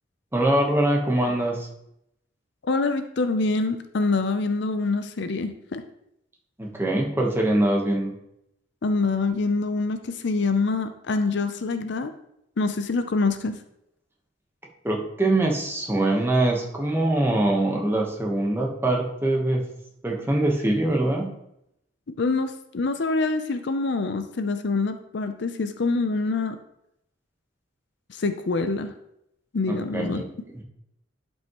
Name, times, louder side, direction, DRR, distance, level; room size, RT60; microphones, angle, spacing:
voice 1, 0.3-1.7 6.6-8.2 14.8-19.7 20.0-21.3 29.7-30.3 30.5-30.6, right 1 dB, 10° right, 0 dB, 1.1 m, -23 dB
voice 2, 2.6-5.8 8.8-12.1 12.6-13.6 22.2-26.6 28.1-28.9 29.5-30.2, left 3 dB, 60° left, 9 dB, 0.5 m, -25 dB
11.5 x 5.5 x 3.0 m, 0.80 s
head